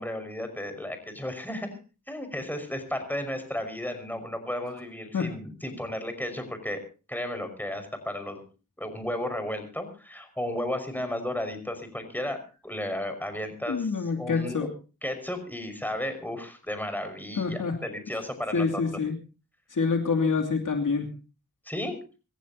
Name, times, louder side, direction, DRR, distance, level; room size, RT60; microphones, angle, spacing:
voice 1, 0.0-1.8 2.1-6.8 7.1-8.4 8.8-14.7 15.0-18.8 21.7-21.9, left 1 dB, 5° left, 8 dB, 5.6 m, -34 dB
voice 2, 13.7-14.7 17.4-17.7 18.5-19.1 19.7-21.1, left 5 dB, 65° left, 3 dB, 2.9 m, -26 dB
26.5 x 15.0 x 2.9 m, 0.34 s
cardioid pair, 65°, 34 cm